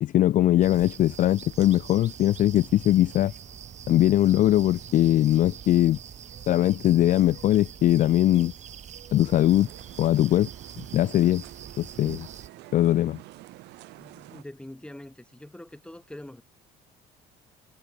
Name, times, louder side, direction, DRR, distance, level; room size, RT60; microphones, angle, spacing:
voice 1, 0.0-3.3 3.9-6.0 6.5-8.5 9.1-9.7 10.0-10.5 10.9-11.4 11.8-12.3 12.7-13.2, left 13 dB, 50° left, 0.4 m, -21 dB
sound 1, 0.6-12.5, right 9 dB, 45° right, 1.1 m, -44 dB
sound 2, 2.3-7.5, left 4 dB, 25° left, 7.2 m, -63 dB
sound 3, 9.2-14.4, right 19 dB, 90° right, 3.9 m, -47 dB
voice 2, 14.0-16.4, left 1 dB, 5° left, 6.3 m, -44 dB
cardioid pair, 110°, 17 cm